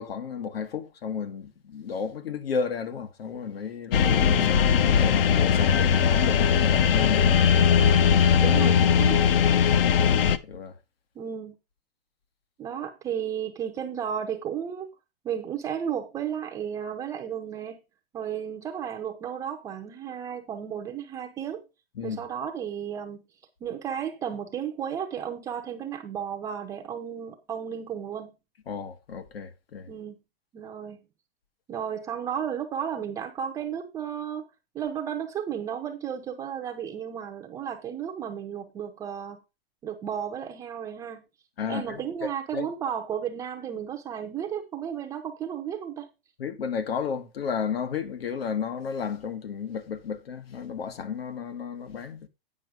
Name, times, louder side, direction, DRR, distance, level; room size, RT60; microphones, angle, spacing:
voice 1, 0.0-4.2 4.5-4.6 4.9-7.4 9.1-10.1 10.4-10.7 21.9-22.2 28.7-29.9 41.6-42.0 42.5-42.7 46.4-52.3, left 6 dB, 90° left, 1.7 m, -33 dB
sound 1, 3.9-10.4, left 7 dB, 70° left, 0.9 m, -20 dB
voice 2, 4.0-4.5 8.4-9.2 11.2-11.6 12.6-14.9 15.2-17.8 18.1-21.7 22.0-23.2 23.6-28.3 29.9-30.2 30.5-31.0 31.7-34.5 34.7-39.4 39.8-41.2 41.7-46.1, right 8 dB, 10° right, 0.5 m, -33 dB
9.3 x 5.5 x 4.9 m
hypercardioid pair, 160°, 29 cm